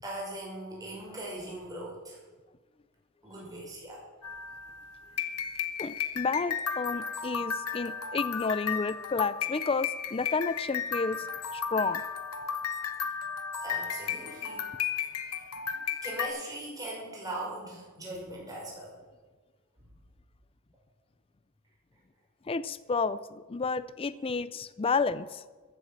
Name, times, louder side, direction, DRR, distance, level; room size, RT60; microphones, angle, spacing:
voice 1, 0.0-2.2 3.2-4.0 13.6-14.6 15.2-15.4 16.0-19.0, right 1 dB, 15° right, -3 dB, 5.6 m, -40 dB
sound 1, 4.2-16.3, left 7 dB, 80° left, 1.3 m, -34 dB
voice 2, 5.8-11.3 11.5-12.0 22.5-25.4, left 4 dB, 25° left, 15 dB, 0.4 m, -31 dB
14.5 x 9.0 x 7.4 m, 1.3 s
head